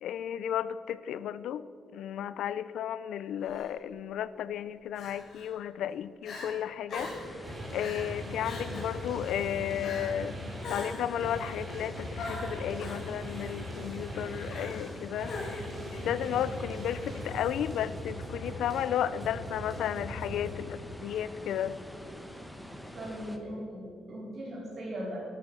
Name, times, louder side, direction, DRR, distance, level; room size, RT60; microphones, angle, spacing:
voice 1, 0.0-1.7 1.9-7.4 7.7-10.4 10.7-21.8, left 10 dB, 80° left, 16 dB, 0.5 m, -33 dB
Crying sobbing, 3.4-3.7 4.9-5.5 5.9-6.0 6.2-6.5 6.9-7.3 7.8-8.1 8.4-8.9 9.8-10.2 10.6-11.2 12.2-13.0 14.5-14.9 15.2-15.8, left 3 dB, 50° left, 4.0 m, -41 dB
sound 1, 6.9-23.4, equal, ahead, 1.0 m, -45 dB
sound 2, 7.4-20.5, equal, 25° right, 3.8 m, -40 dB
voice 2, 22.9-25.2, equal, 40° right, -5 dB, 4.4 m, -38 dB
12.5 x 12.0 x 6.3 m, 2.4 s
cardioid pair, 165°, 0 cm